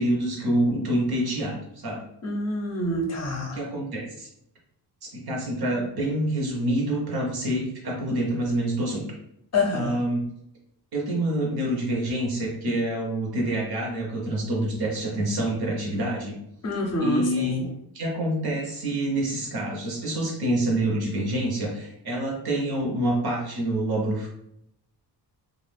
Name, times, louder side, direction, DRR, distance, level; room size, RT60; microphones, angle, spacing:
voice 1, 0.0-2.0 3.5-4.3 5.0-9.0 9.7-10.2 10.9-16.4 17.0-24.3, right 1 dB, 65° right, -1 dB, 1.0 m, -27 dB
voice 2, 2.2-3.6 9.5-10.0 16.6-17.7, left 2 dB, 40° left, 0 dB, 0.6 m, -26 dB
2.5 x 2.3 x 3.3 m, 0.74 s
wide cardioid pair, 155°, 41 cm